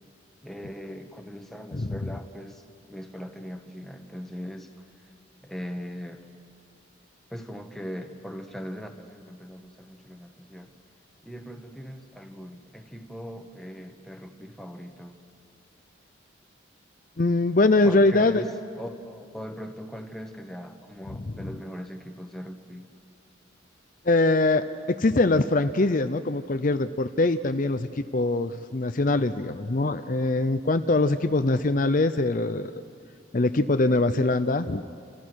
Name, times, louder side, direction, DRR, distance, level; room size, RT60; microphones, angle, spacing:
voice 1, 0.4-4.7 5.4-6.3 7.3-10.7 11.2-15.2 17.8-22.8, equal, ahead, 4 dB, 1.4 m, -40 dB
voice 2, 1.7-2.1 17.2-18.4 21.3-21.4 24.0-32.8 33.3-34.8, left 2 dB, 45° left, 9 dB, 0.6 m, -23 dB
29.5 x 28.0 x 6.4 m, 2.4 s
head